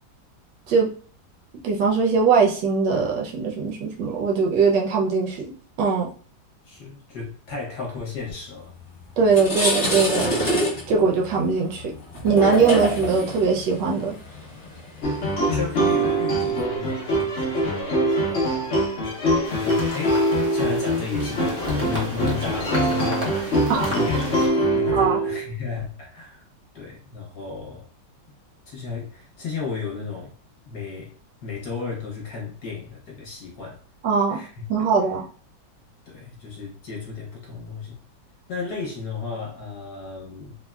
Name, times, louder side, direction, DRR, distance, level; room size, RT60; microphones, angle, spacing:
voice 1, 1.6-5.5 5.8-6.1 9.2-10.3 10.9-11.9 12.2-14.2 23.7-23.9 24.9-25.2 34.0-34.4 34.7-35.2, right 5 dB, 75° right, -1 dB, 1.2 m, -21 dB
voice 2, 6.6-8.7 15.0-15.1 15.5-18.7 19.6-26.4 26.7-27.9 28.7-30.3 30.7-31.1 31.4-33.8 34.3-34.7 36.1-38.0 38.5-40.6, left 5 dB, 65° left, -2 dB, 1.1 m, -34 dB
sound 1, 8.7-8.8 9.2-16.5, equal, 30° left, 0.8 m, -26 dB
sound 2, 15.0-25.5, right 1 dB, 90° left, 0.6 m, -23 dB
sound 3, 19.4-24.5, equal, 35° right, 0.6 m, -34 dB
3.5 x 2.1 x 2.2 m, 0.44 s
omnidirectional pair, 2.1 m